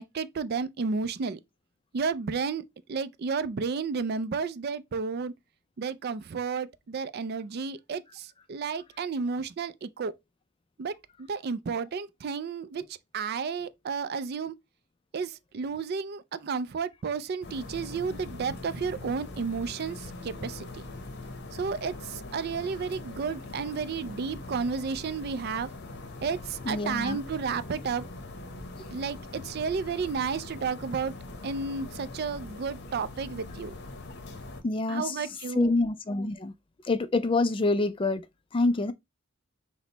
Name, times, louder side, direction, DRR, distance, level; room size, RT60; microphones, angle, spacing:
voice 1, 0.0-1.4 1.9-2.6 2.9-5.3 5.8-10.1 10.8-10.9 11.2-12.8 13.1-14.5 15.1-20.8 21.5-25.7 26.2-28.0 28.9-31.1 31.4-33.7 34.9-35.7, right 5 dB, 50° right, 0.4 m, -32 dB
sound 1, 17.4-34.6, left 2 dB, 50° left, 0.8 m, -42 dB
voice 2, 26.7-27.2 34.6-35.2 35.5-36.5 36.8-38.2 38.5-38.9, left 2 dB, 25° left, 0.3 m, -26 dB
6.0 x 2.1 x 3.9 m
head